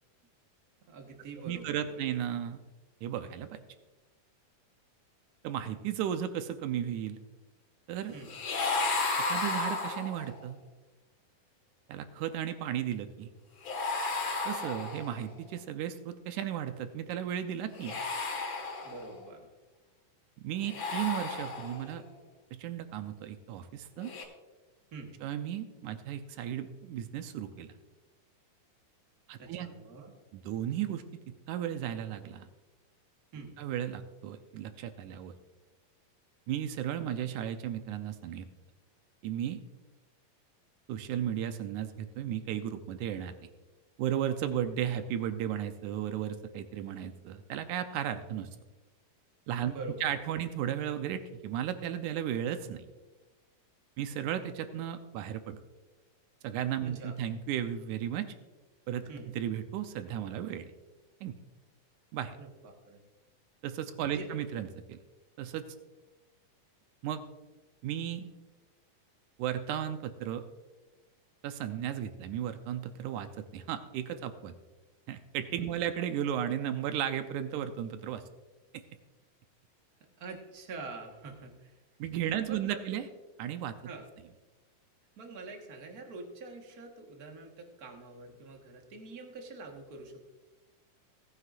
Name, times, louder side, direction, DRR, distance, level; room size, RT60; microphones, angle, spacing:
voice 1, 0.9-2.1 8.1-8.4 18.8-19.5 24.9-25.1 29.4-30.1 33.3-33.5 49.6-50.0 50.4-50.5 56.8-57.1 59.1-59.3 62.4-63.0 64.1-64.3 75.6-75.8 80.2-81.8 82.5-83.0 83.8-84.1 85.2-90.2, right 3 dB, 55° right, 2 dB, 1.0 m, -45 dB
voice 2, 1.4-2.6 3.0-3.6 5.4-7.2 7.9-8.1 9.3-10.6 11.9-13.3 14.5-18.0 20.4-22.0 22.5-24.1 25.2-27.7 29.3-29.7 30.3-32.5 33.6-35.3 36.5-38.5 39.2-39.6 40.9-43.3 44.0-48.5 49.5-49.7 50.0-52.8 54.0-55.6 56.4-58.3 58.9-60.7 61.2-61.4 62.1-62.4 63.6-65.0 65.4-65.6 67.0-67.2 67.8-68.3 69.4-70.4 71.4-74.5 75.1-78.2 78.7-78.8 82.0-83.1 83.4-83.9, right 10 dB, 80° right, 9 dB, 1.9 m, -35 dB
sound 1, 8.2-10.4 13.6-15.3 17.7-19.2 20.6-22.0 24.0-24.2, left 3 dB, 55° left, 2.7 m, -33 dB
17.5 x 9.5 x 2.5 m, 1.2 s
omnidirectional pair, 3.9 m